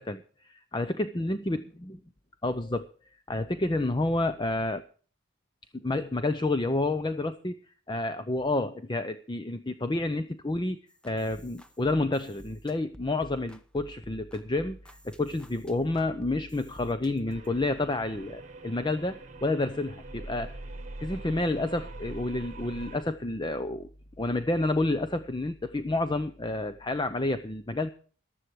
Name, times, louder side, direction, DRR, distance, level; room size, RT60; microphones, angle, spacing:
voice 1, 0.0-1.6 2.4-2.9 3.3-4.8 5.7-7.5 7.9-10.8 11.0-20.6 21.0-23.9 24.2-27.9, left 2 dB, 25° left, 11 dB, 0.7 m, -29 dB
sound 1, 10.9-17.6, equal, 5° left, 1.0 m, -51 dB
sound 2, 17.3-23.0, right 2 dB, 40° right, 1.8 m, -43 dB
14.5 x 11.5 x 4.8 m, 0.41 s
head